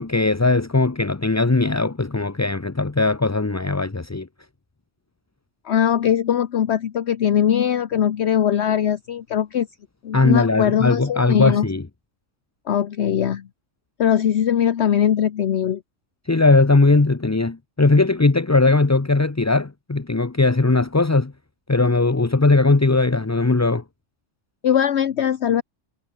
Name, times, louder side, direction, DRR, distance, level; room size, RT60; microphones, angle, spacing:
voice 1, 0.0-4.3 10.1-11.8 16.3-21.3 21.7-23.8, left 3 dB, 15° left, 0.6 m, -19 dB
voice 2, 5.6-9.7 10.0-11.7 12.7-13.5 14.0-15.8 24.6-25.6, left 9 dB, 60° left, 1.1 m, -20 dB
omnidirectional pair, 1.3 m